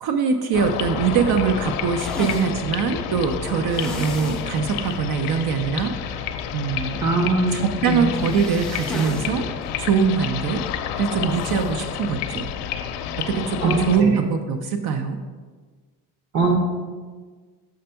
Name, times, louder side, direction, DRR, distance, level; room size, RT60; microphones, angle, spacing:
voice 1, 0.0-7.0 7.5-9.5 9.8-10.6 11.0-12.5 13.3-15.2, right 6 dB, 65° right, 6 dB, 0.6 m, -23 dB
sound 1, 0.5-14.0, left 8 dB, 85° left, 0.6 m, -30 dB
sound 2, 2.0-2.5 3.7-4.5 4.8-4.9 5.3-5.4 8.1-9.3 9.6-9.7 11.3-11.7, equal, ahead, 0.5 m, -33 dB
voice 2, 7.0-8.1 13.6-14.2 16.3-16.6, right 3 dB, 45° right, 4 dB, 0.9 m, -22 dB
6.5 x 3.4 x 5.6 m, 1.5 s
cardioid pair, 135°, 40 cm